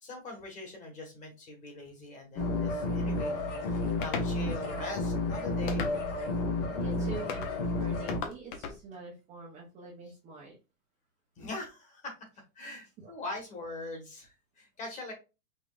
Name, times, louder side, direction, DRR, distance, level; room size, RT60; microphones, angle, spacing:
voice 1, 0.0-3.4 3.7-6.0 11.4-12.1 12.5-15.1, left 2 dB, 15° left, 3 dB, 1.4 m, -42 dB
sound 1, 2.4-8.2, left 2 dB, 55° left, 2.1 m, -31 dB
sound 2, 4.0-4.3 5.7-6.2 7.3-7.5 8.1-8.8, left 6 dB, 35° left, 0.8 m, -37 dB
voice 2, 6.7-10.6 12.7-13.1, right 3 dB, 15° right, -3 dB, 0.8 m, -46 dB
5.4 x 3.5 x 2.5 m, 0.28 s
supercardioid pair, 165°, 42 cm